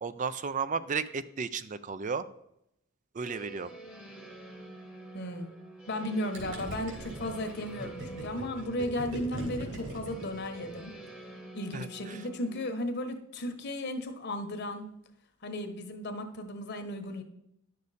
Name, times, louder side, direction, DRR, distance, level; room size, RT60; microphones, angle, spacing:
voice 1, 0.0-2.3 3.1-3.7 11.7-12.2, right 5 dB, 40° right, 14 dB, 0.4 m, -34 dB
sound 1, 3.2-12.7, right 2 dB, 5° right, 1.0 m, -47 dB
voice 2, 5.1-5.5 5.9-10.9 11.5-14.9 15.4-17.2, left 1 dB, 55° left, 6 dB, 1.1 m, -35 dB
Gurgling, 6.3-11.0, right 1 dB, 60° right, 3.1 m, -40 dB
10.5 x 6.7 x 4.1 m, 0.79 s
head